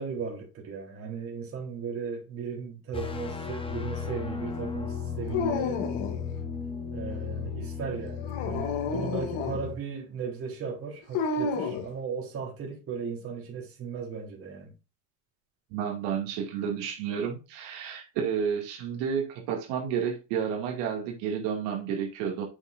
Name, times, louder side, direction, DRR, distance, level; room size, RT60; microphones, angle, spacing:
voice 1, 0.0-5.8 6.9-14.7, right 6 dB, 30° right, 3.5 m, -36 dB
sound 1, 2.9-9.8, left 6 dB, 15° left, 0.8 m, -35 dB
Dog, 5.3-6.3 8.2-9.6 11.1-11.9, left 5 dB, 70° left, 2.3 m, -30 dB
voice 2, 15.7-22.5, right 7 dB, 75° right, 2.4 m, -31 dB
7.9 x 6.0 x 2.6 m
cardioid pair, 165°, 42 cm